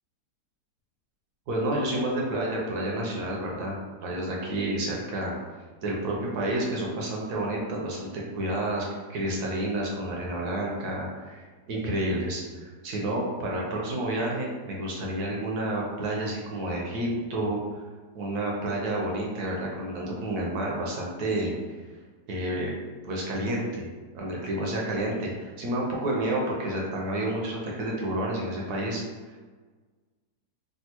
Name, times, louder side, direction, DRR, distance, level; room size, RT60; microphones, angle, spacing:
voice 1, 1.5-5.4 5.8-17.8 18.1-21.5 22.3-22.7 23.0-23.9 24.1-29.0, right 1 dB, 70° right, -2 dB, 1.1 m, -30 dB
3.5 x 2.4 x 2.8 m, 1.4 s
omnidirectional pair, 1.9 m